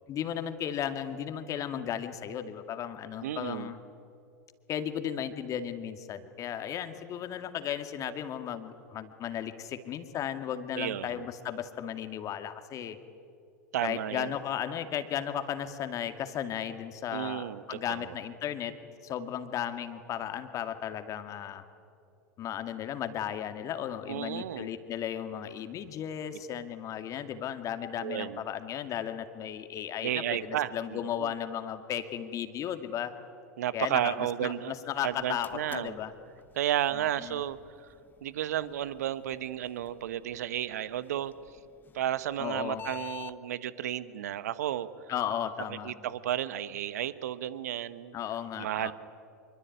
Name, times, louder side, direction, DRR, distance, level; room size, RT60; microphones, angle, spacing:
voice 1, 0.1-3.8 4.7-13.0 13.8-18.7 19.0-21.6 22.4-33.1 33.7-36.1 36.9-37.4 42.4-42.8 45.1-45.9 48.1-48.9, left 9 dB, 35° left, 9 dB, 2.2 m, -35 dB
voice 2, 3.2-3.7 10.7-11.2 13.7-14.4 17.1-18.1 24.1-24.7 28.0-28.4 30.0-31.3 33.6-34.7 35.0-36.0 36.5-37.9 38.2-41.3 41.9-44.9 45.8-48.1 48.6-48.9, right 11 dB, 70° right, 16 dB, 1.2 m, -33 dB
sound 1, 35.1-43.4, left 8 dB, 20° left, 1.0 m, -51 dB
25.0 x 23.5 x 9.5 m, 2.5 s
hypercardioid pair, 90°, 9 cm